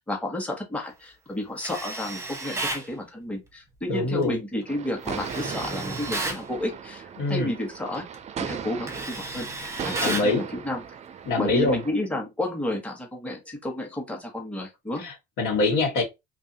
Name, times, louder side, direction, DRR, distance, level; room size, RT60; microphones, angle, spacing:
voice 1, 0.0-8.0 8.4-9.5 9.8-10.8 11.4-15.0, left 1 dB, 5° left, 1.2 m, -31 dB
Tools, 1.6-2.9 5.1-6.4 7.9-8.2 8.5-10.4, right 2 dB, 15° right, 0.9 m, -33 dB
voice 2, 3.9-4.4 7.2-7.5 10.0-10.4 11.3-11.8 15.0-16.0, left 3 dB, 80° left, 1.9 m, -24 dB
sound 1, 4.7-11.9, right 7 dB, 35° right, 0.4 m, -37 dB
2.8 x 2.6 x 2.8 m
supercardioid pair, 95°, 21 cm